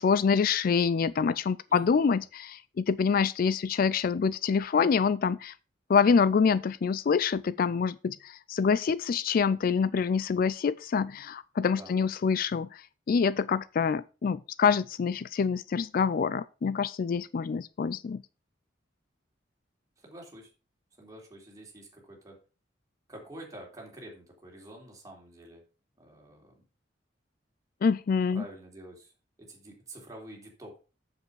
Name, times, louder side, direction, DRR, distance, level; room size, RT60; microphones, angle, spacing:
voice 1, 0.0-5.5 5.9-18.2 27.8-28.4, left 6 dB, 50° left, 0.3 m, -26 dB
voice 2, 1.7-2.1 11.6-12.1 20.0-20.5 21.0-22.4 23.1-25.6 26.0-26.6 28.3-29.1 29.4-30.8, right 1 dB, 20° right, 3.5 m, -48 dB
7.9 x 7.4 x 4.7 m
head